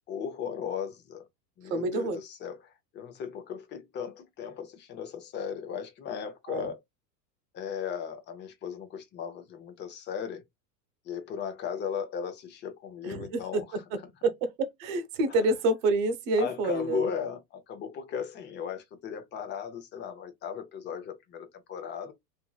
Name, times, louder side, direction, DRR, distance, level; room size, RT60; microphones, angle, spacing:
voice 1, 0.1-1.2 1.6-6.8 7.5-10.4 11.1-13.6 15.3-15.4 16.4-22.1, left 7 dB, 20° left, 0.6 m, -36 dB
voice 2, 1.7-2.2 6.5-6.7 13.0-13.6 14.2-14.5 14.8-17.1, right 2 dB, 50° right, 1.1 m, -27 dB
2.9 x 2.7 x 2.3 m
supercardioid pair, 135°, 50 cm